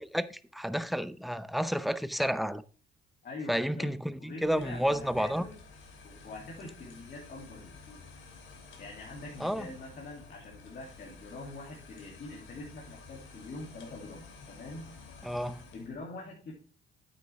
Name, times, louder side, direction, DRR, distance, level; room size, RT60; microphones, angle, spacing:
voice 1, 0.0-2.6 3.5-5.5 9.4-9.7 15.2-15.6, equal, ahead, 0.6 m, -31 dB
voice 2, 3.2-3.9 4.2-5.6 6.0-8.0 8.8-15.0 15.7-16.5, left 2 dB, 55° left, 2.8 m, -44 dB
sound 1, 4.4-16.0, left 4 dB, 75° left, 2.8 m, -51 dB
9.0 x 8.6 x 3.5 m
cardioid pair, 90°, 20 cm